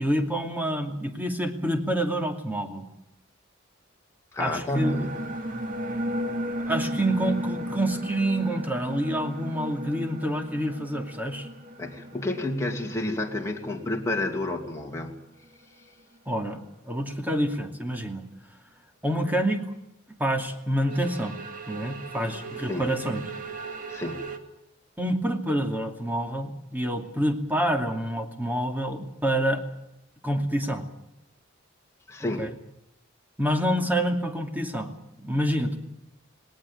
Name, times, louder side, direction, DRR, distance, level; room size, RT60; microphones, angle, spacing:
voice 1, 0.0-2.9 4.4-5.0 6.7-11.5 16.3-18.2 19.0-19.6 20.1-21.4 21.7-23.2 25.0-29.6 30.2-30.8 32.2-32.5 33.4-35.8, right 1 dB, 10° right, 4 dB, 2.5 m, -27 dB
voice 2, 4.3-5.1 11.8-15.2 22.7-22.9 23.9-24.3 32.1-32.5, left 1 dB, 15° left, 1 dB, 2.5 m, -30 dB
sound 1, 4.7-14.4 14.7-14.8 20.7-24.4, right 1 dB, 40° right, 2.1 m, -35 dB
19.5 x 18.5 x 9.2 m, 0.84 s
head